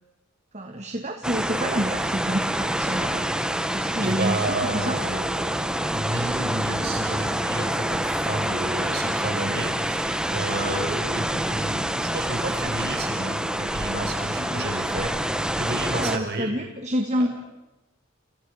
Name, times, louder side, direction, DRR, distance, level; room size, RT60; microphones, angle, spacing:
voice 1, 0.5-3.3 3.7-5.0 14.4-14.7 15.8-17.3, equal, 35° right, 4 dB, 1.8 m, -28 dB
sound 1, 1.2-16.2, right 1 dB, 5° right, 1.2 m, -27 dB
voice 2, 4.0-15.1 15.5-16.5 17.2-17.3, right 2 dB, 50° right, 3 dB, 5.5 m, -31 dB
30.0 x 29.0 x 5.1 m, 0.98 s
head